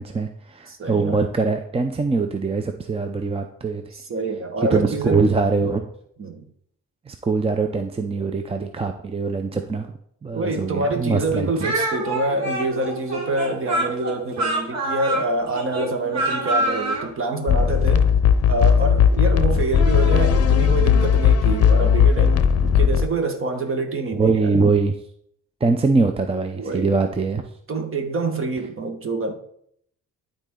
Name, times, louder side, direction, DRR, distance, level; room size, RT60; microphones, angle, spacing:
voice 1, 0.0-3.8 4.7-5.9 7.1-9.9 10.2-11.5 24.2-24.9 25.6-27.4, right 4 dB, 20° right, 6 dB, 0.6 m, -22 dB
voice 2, 0.7-1.2 3.9-5.2 6.2-6.5 10.3-18.1 18.5-24.5 26.5-26.9 27.7-29.3, right 3 dB, 45° right, 5 dB, 1.6 m, -26 dB
Speech, 11.6-17.1, right 1 dB, 60° right, 2.2 m, -26 dB
sound 1, 17.5-23.1, left 7 dB, 55° left, 0.7 m, -17 dB
12.0 x 4.2 x 3.8 m, 0.68 s
cardioid pair, 90°, 30 cm